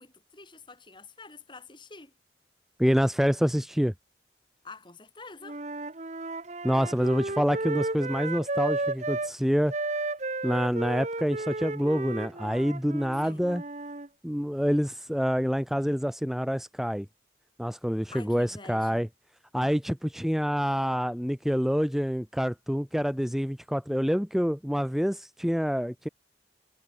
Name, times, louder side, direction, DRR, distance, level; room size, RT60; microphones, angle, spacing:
voice 1, 0.0-2.1 4.6-5.6 13.2-13.5 18.1-19.1, left 3 dB, 25° left, 4.1 m, -47 dB
voice 2, 2.8-3.9 6.6-9.7 10.4-13.6 14.2-17.0 17.6-19.1 19.5-26.1, equal, ahead, 1.2 m, -27 dB
Wind instrument woodwind instrument, 5.4-9.3 9.7-14.1, right 2 dB, 40° right, 1.3 m, -33 dB
head